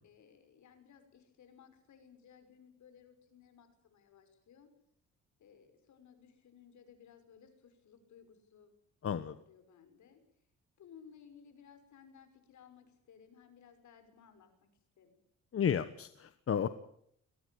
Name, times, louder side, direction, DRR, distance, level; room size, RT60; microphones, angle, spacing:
voice 1, 0.0-4.7 5.4-8.7 9.0-9.2 9.5-10.2 10.8-14.5 15.0-15.2, left 7 dB, 70° left, 8 dB, 5.8 m, -59 dB
voice 2, 9.0-9.4 15.5-16.7, left 8 dB, 50° left, 12 dB, 1.2 m, -32 dB
22.5 x 18.0 x 8.6 m, 0.70 s
cardioid pair, 90°, 30 cm